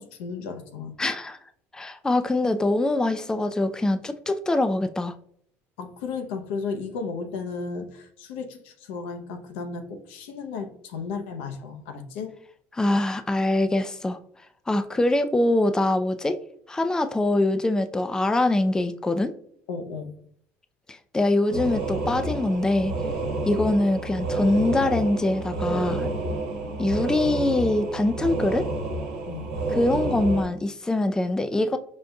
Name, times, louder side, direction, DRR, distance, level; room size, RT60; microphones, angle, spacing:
voice 1, 0.0-1.0 5.8-12.3 19.7-20.1 29.3-29.5, left 5 dB, 85° left, 6 dB, 0.7 m, -34 dB
voice 2, 1.0-1.4 1.7-5.2 12.7-14.2 14.7-16.4 16.7-19.3 20.9-22.9 23.4-26.1 26.8-28.7 29.7-31.8, left 2 dB, 10° left, 9 dB, 0.3 m, -23 dB
sound 1, 21.5-30.4, right 2 dB, 85° right, 1.1 m, -29 dB
5.2 x 2.6 x 2.2 m, 0.64 s
supercardioid pair, 80°, 6 cm